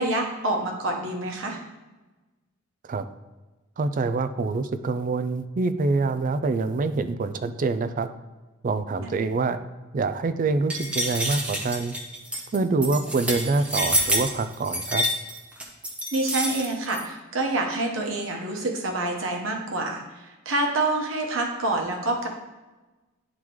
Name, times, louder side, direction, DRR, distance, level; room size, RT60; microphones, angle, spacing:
voice 1, 0.0-1.6 16.1-20.0 20.4-22.3, right 2 dB, 65° right, 2 dB, 1.2 m, -27 dB
voice 2, 3.8-8.1 8.6-9.6 9.9-11.9 12.5-15.0, right 3 dB, 40° right, 11 dB, 0.4 m, -25 dB
sound 1, 10.7-17.0, equal, 5° right, 0.8 m, -27 dB
10.0 x 3.7 x 3.1 m, 1.2 s
head